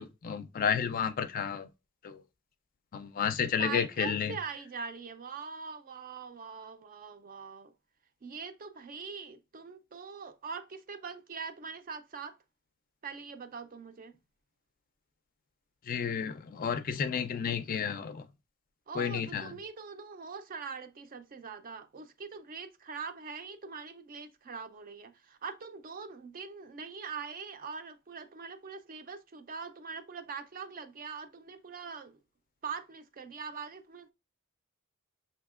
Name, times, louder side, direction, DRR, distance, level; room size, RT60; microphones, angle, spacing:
voice 1, 0.0-1.7 2.0-2.2 2.9-4.3 15.9-18.2 19.0-19.5, left 7 dB, 40° left, 0.4 m, -31 dB
voice 2, 3.6-7.7 8.2-12.4 13.0-14.1 18.9-32.2 32.6-34.1, right 5 dB, 40° right, 0.5 m, -42 dB
6.1 x 2.8 x 2.4 m
head